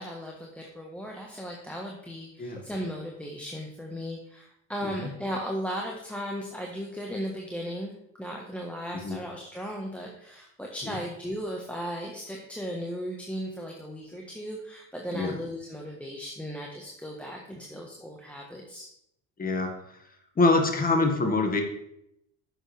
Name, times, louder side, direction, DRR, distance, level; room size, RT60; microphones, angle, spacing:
voice 1, 0.0-7.9 8.2-18.9, equal, 5° left, -1 dB, 1.3 m, -36 dB
voice 2, 19.4-19.7 20.4-21.6, left 3 dB, 25° left, 4 dB, 1.8 m, -25 dB
10.0 x 7.4 x 3.4 m, 0.77 s
cardioid pair, 110°, 33 cm